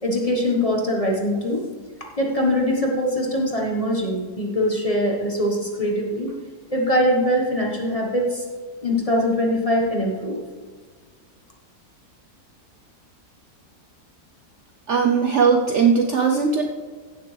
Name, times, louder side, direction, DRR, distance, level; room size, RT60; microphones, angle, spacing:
voice 1, 0.0-1.6 2.2-6.3 6.7-8.5 8.8-10.4, equal, 25° left, 0 dB, 1.1 m, -22 dB
voice 2, 14.9-16.6, right 5 dB, 60° right, 3 dB, 0.8 m, -18 dB
15.5 x 6.8 x 3.2 m, 1.5 s
omnidirectional pair, 1.8 m